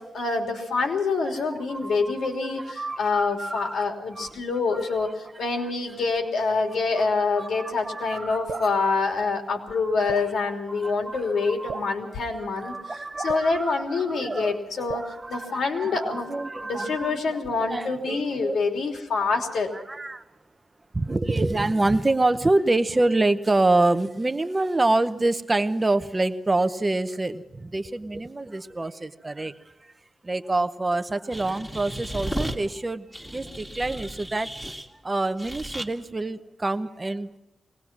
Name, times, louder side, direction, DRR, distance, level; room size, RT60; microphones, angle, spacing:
voice 1, 0.0-12.7 13.2-15.0 15.3-16.3 16.6-19.7, left 4 dB, 70° left, 3 dB, 3.2 m, -26 dB
voice 2, 1.4-2.3 2.6-3.8 4.1-4.4 4.7-4.8 7.0-7.1 7.4-8.9 10.0-11.9 12.3-18.6 19.7-20.2 20.9-29.5 29.8-29.9 30.2-34.5 35.0-37.4, right 2 dB, 15° right, 10 dB, 0.8 m, -27 dB
Drip, 8.5-8.7 10.1-10.3 11.7-11.9 13.3-13.5 14.9-15.2, right 6 dB, 75° right, 0.8 m, -36 dB
sound 1, 31.3-32.6 33.1-34.9 35.4-35.9, equal, 5° left, 2.1 m, -34 dB
22.5 x 19.5 x 6.1 m, 0.98 s
wide cardioid pair, 180°, 0 cm